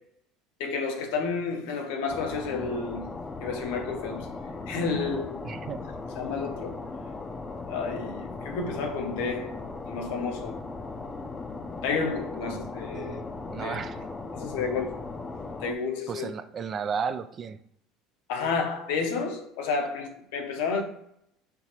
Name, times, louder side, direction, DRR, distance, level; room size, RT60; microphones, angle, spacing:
voice 1, 0.6-3.1 3.4-4.3 4.7-5.5 6.2-6.8 7.7-10.6 11.8-13.2 13.6-13.8 14.3-15.0 15.6-16.3 18.3-20.8, left 4 dB, 80° left, 0.7 m, -31 dB
sound 1, 2.1-15.7, left 3 dB, 25° left, 0.5 m, -38 dB
voice 2, 5.4-5.8 12.4-14.1 16.1-17.6, right 6 dB, 40° right, 0.3 m, -34 dB
4.6 x 3.8 x 2.9 m
supercardioid pair, 90°, 0 cm